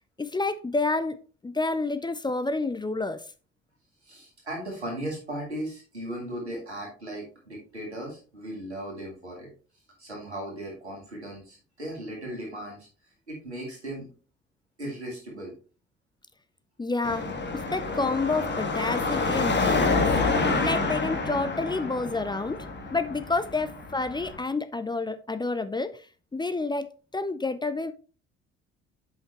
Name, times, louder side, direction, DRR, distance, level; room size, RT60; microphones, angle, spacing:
voice 1, 0.2-1.2 1.4-3.2 16.8-20.2 20.6-22.7 22.9-26.0 26.3-27.9, left 3 dB, 15° left, 12 dB, 0.5 m, -29 dB
voice 2, 4.0-9.5 10.0-12.9 13.3-14.1 14.8-15.5, right 1 dB, 90° right, -1 dB, 2.0 m, -37 dB
Car passing by / Traffic noise roadway noise / Engine, 17.0-24.4, left 3 dB, 35° left, 1.7 m, -28 dB
7.9 x 5.7 x 3.0 m, 0.36 s
figure-of-eight pair, 45°, 32 cm